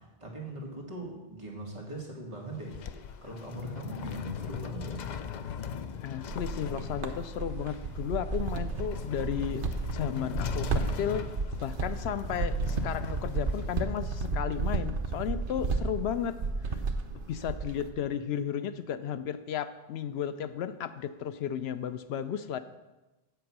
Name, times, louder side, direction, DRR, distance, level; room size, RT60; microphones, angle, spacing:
voice 1, 0.0-2.7 3.2-5.0, right 2 dB, 30° right, -2 dB, 2.2 m, -40 dB
sound 1, 2.4-14.3, left 7 dB, 55° left, 0.5 m, -40 dB
voice 2, 6.0-9.6 9.9-11.3 11.6-16.4 17.3-22.6, left 9 dB, 85° left, 12 dB, 0.8 m, -34 dB
sound 2, 6.3-17.9, right 4 dB, 60° right, 0.9 m, -33 dB
8.0 x 8.0 x 6.1 m, 1.1 s
omnidirectional pair, 1.0 m